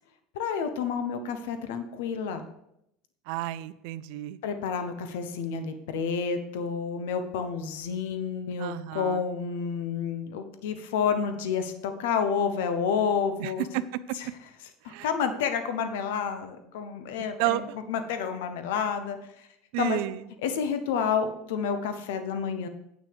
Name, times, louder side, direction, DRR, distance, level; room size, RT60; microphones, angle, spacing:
voice 1, 0.3-2.4 4.4-13.7 14.8-17.6 17.9-19.2 19.8-20.0 20.4-22.7, left 6 dB, 85° left, 8 dB, 1.0 m, -29 dB
voice 2, 3.3-4.4 8.6-9.2 13.4-14.2 14.9-15.1 17.4-17.8 19.7-20.2, right 15 dB, 70° right, 14 dB, 0.4 m, -31 dB
9.1 x 6.2 x 5.1 m, 0.79 s
supercardioid pair, 135°, 0 cm